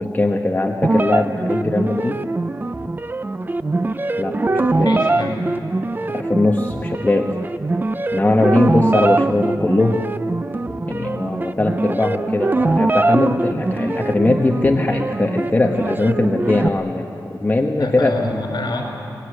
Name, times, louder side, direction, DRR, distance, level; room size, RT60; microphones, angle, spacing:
voice 1, 0.0-2.2 4.2-4.4 4.6-4.9 6.1-7.3 8.1-10.0 10.9-18.2, left 2 dB, 25° left, 1 dB, 1.2 m, -20 dB
sound 1, 0.8-16.7, right 2 dB, 25° right, 0.6 m, -22 dB
voice 2, 4.5-5.6 17.7-18.8, left 2 dB, 65° left, 1 dB, 5.6 m, -27 dB
23.5 x 20.5 x 9.9 m, 2.6 s
wide cardioid pair, 145°, 8 cm